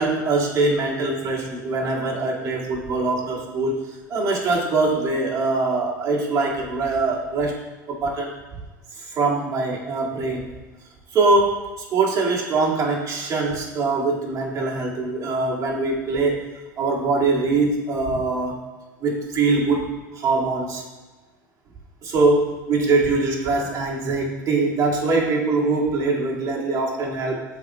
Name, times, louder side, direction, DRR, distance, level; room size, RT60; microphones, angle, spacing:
voice 1, 0.0-7.6 7.9-8.4 9.0-10.5 11.1-16.4 16.8-18.7 19.0-20.8 22.0-27.5, right 3 dB, 35° right, -4 dB, 2.1 m, -23 dB
12.5 x 4.7 x 2.3 m, 1.2 s
hypercardioid pair, 80°, 10 cm